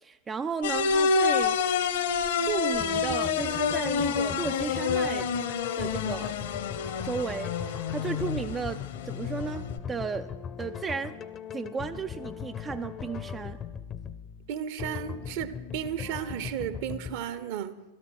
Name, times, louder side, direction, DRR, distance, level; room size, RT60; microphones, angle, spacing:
voice 1, 0.0-1.6 2.4-5.3 5.8-6.3 7.0-10.3 10.6-11.2 11.5-13.6, right 5 dB, 20° right, 0.4 m, -34 dB
sound 1, 0.6-9.8, left 5 dB, 60° left, 1.1 m, -28 dB
sound 2, 2.8-17.2, left 7 dB, 25° left, 0.7 m, -39 dB
voice 2, 14.5-17.8, right 9 dB, 50° right, 1.0 m, -34 dB
16.0 x 13.0 x 6.4 m
figure-of-eight pair, 90°, 0 cm